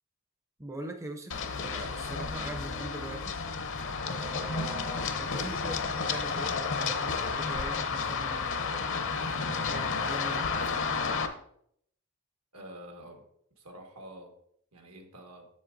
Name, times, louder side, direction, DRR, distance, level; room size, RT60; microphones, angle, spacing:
voice 1, 0.6-3.4 4.0-9.0 9.6-10.8, right 1 dB, 15° right, 4 dB, 0.5 m, -42 dB
Run, 1.3-11.3, left 5 dB, 60° left, 0.6 m, -32 dB
voice 2, 12.5-13.2 13.5-14.3 14.7-15.5, right 1 dB, 90° right, 2 dB, 1.5 m, -47 dB
7.2 x 7.1 x 2.6 m, 0.68 s
head